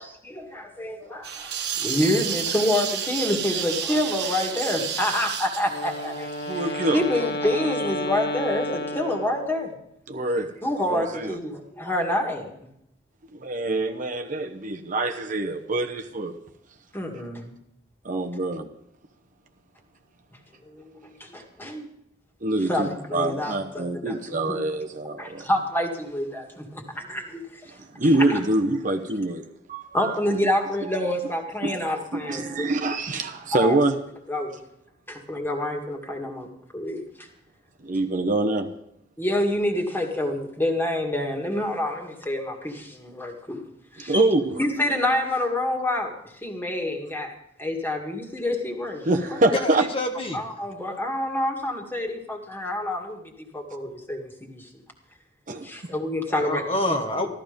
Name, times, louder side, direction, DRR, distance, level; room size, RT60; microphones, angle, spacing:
voice 1, 0.0-1.5 1.8-6.3 6.6-9.7 10.6-12.5 16.9-17.5 20.7-21.9 22.6-24.1 24.5-24.6 25.2-27.4 28.0-28.4 29.9-32.7 33.5-33.8 34.3-34.6 35.1-36.5 36.7-37.3 39.2-43.6 43.9-44.3 44.6-46.1 46.4-49.0 49.3-49.4 50.3-54.7 55.6-56.6, left 1 dB, 10° left, 1 dB, 2.1 m, -27 dB
sound 1, 1.2-7.0, right 8 dB, 60° right, 1.5 m, -31 dB
Wind instrument woodwind instrument, 5.7-9.8, left 1 dB, 55° left, 1.4 m, -31 dB
voice 2, 6.5-7.0 10.1-10.5 10.9-11.4 13.3-16.3 18.0-18.7 22.4-25.4 27.9-29.4 29.7-30.1 31.6-33.9 37.8-38.7 44.1-44.6 49.0-49.9 55.5-55.9, right 2 dB, 45° right, 4 dB, 1.0 m, -25 dB
voice 3, 49.5-50.4 56.3-57.3, left 1 dB, 30° left, 4 dB, 1.3 m, -27 dB
14.5 x 12.5 x 5.2 m, 0.75 s
head